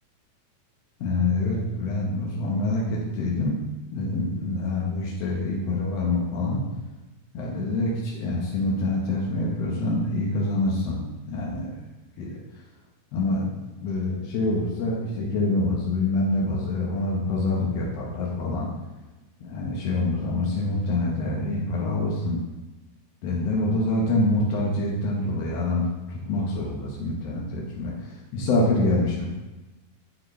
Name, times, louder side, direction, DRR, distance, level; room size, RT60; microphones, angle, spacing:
voice 1, 1.0-3.5 3.9-6.6 7.3-11.7 12.2-12.3 13.1-18.7 19.4-22.4 23.2-27.9 28.3-29.2, left 2 dB, 70° left, -4 dB, 1.5 m, -26 dB
7.3 x 6.6 x 3.2 m, 1.1 s
omnidirectional pair, 4.4 m